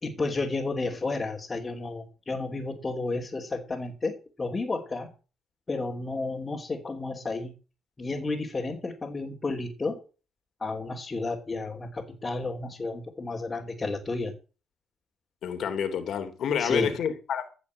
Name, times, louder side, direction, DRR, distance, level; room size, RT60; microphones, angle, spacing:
voice 1, 0.0-5.1 5.7-7.5 8.0-10.0 10.6-14.3 16.6-16.9, left 3 dB, 25° left, 3.2 m, -32 dB
voice 2, 15.4-17.5, left 8 dB, 70° left, 3.3 m, -29 dB
16.0 x 6.4 x 8.2 m
cardioid pair, 90°, 0 cm